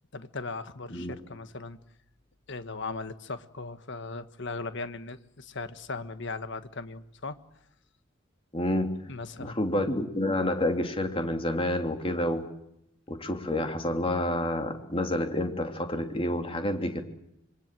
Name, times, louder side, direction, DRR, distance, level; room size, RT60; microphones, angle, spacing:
voice 1, 0.1-1.8 2.5-7.4 9.1-9.5, left 3 dB, 65° left, 10 dB, 1.5 m, -38 dB
voice 2, 8.5-8.9 9.4-12.5 13.1-17.0, left 1 dB, 30° left, 4 dB, 3.2 m, -29 dB
26.5 x 24.0 x 7.6 m, 0.80 s
head